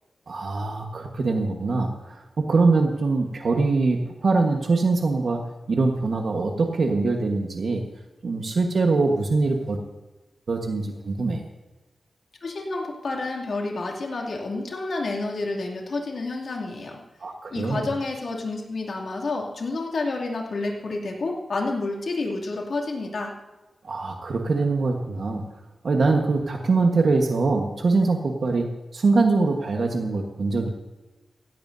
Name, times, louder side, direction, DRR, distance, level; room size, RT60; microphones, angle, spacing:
voice 1, 0.3-5.4 5.7-7.8 8.2-9.8 10.5-11.4 17.2-17.9 23.8-25.4 25.8-30.7, right 3 dB, 65° right, 2 dB, 1.3 m, -23 dB
voice 2, 12.4-17.0 17.5-23.3, left 3 dB, 65° left, -1 dB, 2.6 m, -29 dB
17.0 x 16.0 x 2.7 m, 1.1 s
wide cardioid pair, 120°, 0 cm